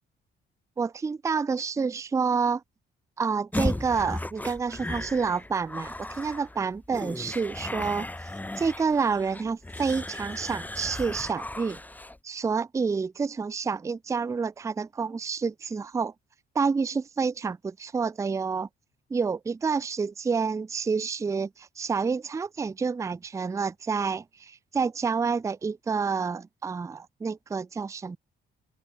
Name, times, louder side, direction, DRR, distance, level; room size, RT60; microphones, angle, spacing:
voice 1, 0.8-2.6 3.2-8.1 8.6-11.8 12.2-16.1 16.6-18.7 19.1-28.2, right 5 dB, 15° right, 0.4 m, -28 dB
sound 1, 3.5-12.2, left 1 dB, 10° left, 1.0 m, -35 dB
open air
cardioid pair, 90°, 20 cm